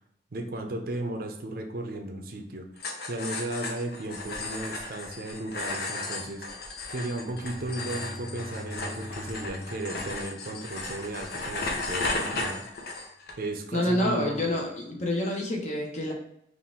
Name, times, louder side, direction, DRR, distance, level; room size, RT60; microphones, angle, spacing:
voice 1, 0.3-2.7 3.1-12.6 13.4-14.4, right 1 dB, 55° right, 4 dB, 0.6 m, -35 dB
sound 1, 2.8-13.3, left 2 dB, 60° left, 0.7 m, -35 dB
Bowed string instrument, 7.0-11.4, left 1 dB, 20° left, 1.5 m, -43 dB
voice 2, 13.7-16.1, left 1 dB, 40° left, 0 dB, 1.0 m, -28 dB
4.2 x 2.5 x 3.7 m, 0.75 s
head